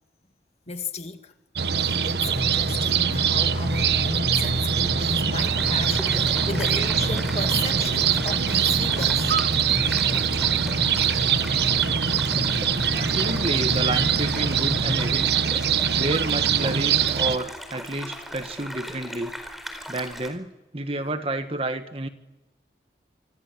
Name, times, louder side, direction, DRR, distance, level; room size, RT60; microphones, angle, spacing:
voice 1, 0.7-1.3 1.8-9.3 12.5-13.0 15.9-16.0 19.7-19.9, left 3 dB, 35° left, 2.1 m, -35 dB
sound 1, 1.6-17.4, right 7 dB, 70° right, 1.2 m, -23 dB
sound 2, 2.2-15.2, left 1 dB, 20° left, 5.2 m, -32 dB
sound 3, 5.3-20.3, equal, ahead, 4.4 m, -38 dB
voice 2, 12.9-15.3 16.0-19.3 19.9-22.1, right 1 dB, 30° right, 1.8 m, -30 dB
29.0 x 26.0 x 7.6 m
head